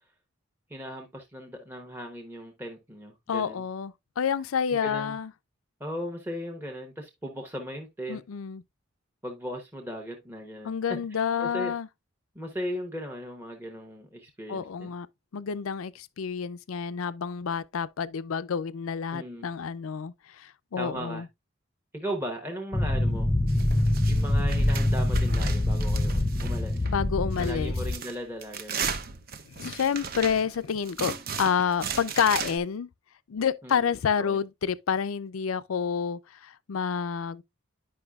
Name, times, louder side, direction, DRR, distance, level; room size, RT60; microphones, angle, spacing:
voice 1, 0.7-3.6 4.7-5.2 5.8-8.2 9.2-10.8 11.1-11.7 12.3-14.9 19.1-19.5 20.7-21.2 21.9-23.3 24.1-26.9 27.4-28.8 33.6-33.9 34.2-34.4, equal, 10° right, 1.0 m, -37 dB
voice 2, 3.3-5.3 8.1-8.6 10.6-11.9 14.5-15.1 15.3-21.3 26.6-27.7 29.5-32.9 33.3-37.4, left 7 dB, 90° left, 0.5 m, -29 dB
sound 1, 22.7-27.9, left 1 dB, 15° left, 0.6 m, -25 dB
sound 2, 23.5-27.0 27.3-32.6, right 6 dB, 45° right, 0.7 m, -37 dB
9.9 x 5.5 x 2.3 m
head